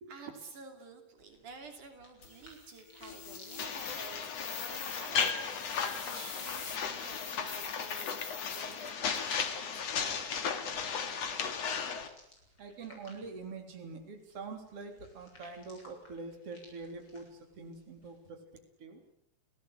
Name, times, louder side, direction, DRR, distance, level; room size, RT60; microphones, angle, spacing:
voice 1, 0.0-5.5 6.0-10.2 12.4-12.5, right 4 dB, 75° right, 5 dB, 4.4 m, -51 dB
sound 1, 1.2-18.3, left 1 dB, 35° left, 7.8 m, -61 dB
sound 2, 2.2-9.4, left 6 dB, 85° left, 4.9 m, -45 dB
sound 3, 3.6-12.1, left 6 dB, 55° left, 3.2 m, -35 dB
voice 2, 12.6-19.0, right 4 dB, 45° right, 4 dB, 4.4 m, -45 dB
29.5 x 18.0 x 8.2 m, 0.73 s
omnidirectional pair, 3.6 m